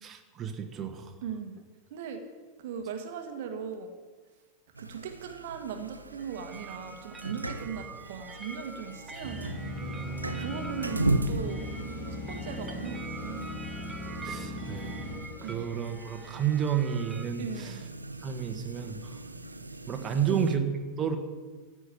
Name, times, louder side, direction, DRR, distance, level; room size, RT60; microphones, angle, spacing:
voice 1, 0.0-1.1 14.2-15.0 15.4-17.8 18.2-19.2 19.9-20.6 21.0-21.2, right 8 dB, 25° right, 5 dB, 1.5 m, -31 dB
voice 2, 1.2-1.6 1.9-2.2 2.6-3.9 4.8-9.7 10.3-11.7 12.1-13.6 15.1-15.6 17.4-17.8 20.1-20.4, right 7 dB, 55° right, 5 dB, 1.5 m, -39 dB
sound 1, 4.7-20.6, right 2 dB, 80° right, 0.8 m, -38 dB
sound 2, 6.2-17.3, right 3 dB, 10° right, 1.3 m, -46 dB
sound 3, 9.2-15.2, left 1 dB, 60° left, 4.6 m, -38 dB
14.5 x 6.3 x 9.7 m, 1.4 s
figure-of-eight pair, 90°, 0 cm